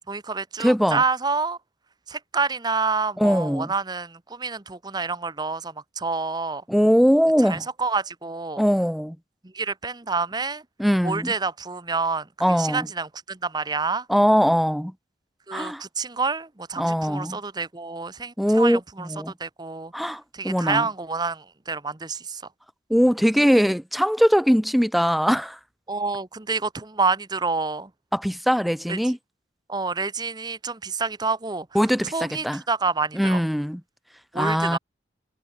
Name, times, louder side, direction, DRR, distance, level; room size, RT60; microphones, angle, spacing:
voice 1, 0.1-1.6 2.1-6.6 7.4-8.6 9.5-10.6 11.0-14.1 15.5-19.1 19.4-19.9 20.3-22.4 25.9-27.9 28.9-29.0 29.7-31.7 32.1-33.4 34.3-34.8, right 4 dB, 20° right, 0.9 m, -28 dB
voice 2, 0.6-1.0 3.2-3.7 6.7-7.6 8.6-9.2 10.8-11.3 12.4-12.9 14.1-14.9 15.5-15.8 16.8-17.4 18.4-19.3 19.9-20.9 22.9-25.6 28.1-29.2 31.7-32.6 33.1-33.8 34.3-34.8, equal, ahead, 0.6 m, -21 dB
head